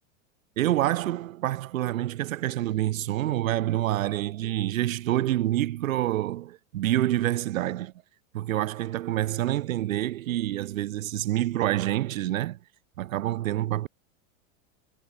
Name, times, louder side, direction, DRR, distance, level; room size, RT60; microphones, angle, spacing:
voice 1, 0.6-7.9 8.3-12.6 13.0-13.9, right 14 dB, 85° right, 5.5 m, -27 dB
supercardioid pair, 145°, 39 cm